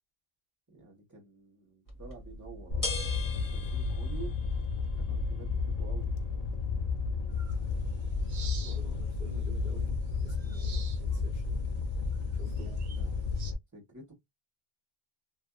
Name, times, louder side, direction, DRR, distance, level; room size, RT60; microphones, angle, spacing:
voice 1, 0.7-4.4 4.9-6.1 12.2-14.1, right 4 dB, 20° right, 1.1 m, -50 dB
sound 1, 1.9-13.3, left 2 dB, 20° left, 1.2 m, -45 dB
Fire, 2.7-13.5, left 4 dB, 50° left, 0.5 m, -32 dB
sound 2, 7.4-13.5, right 6 dB, 90° right, 0.9 m, -51 dB
voice 2, 8.6-11.7 12.3-12.7, right 3 dB, 50° right, 1.0 m, -51 dB
2.5 x 2.4 x 2.3 m
omnidirectional pair, 1.0 m